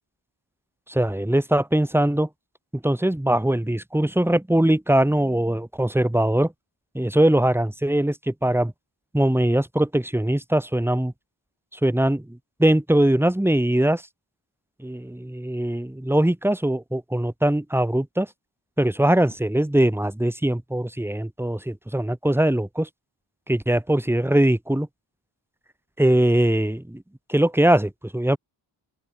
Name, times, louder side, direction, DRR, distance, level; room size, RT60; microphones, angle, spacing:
voice 1, 0.9-2.3 2.7-6.5 6.9-8.7 9.1-11.1 11.7-14.0 14.8-18.3 18.8-22.9 23.5-24.9 26.0-27.0 27.3-28.4, right 1 dB, 5° right, 2.1 m, -21 dB
open air
wide cardioid pair, 125°, 43 cm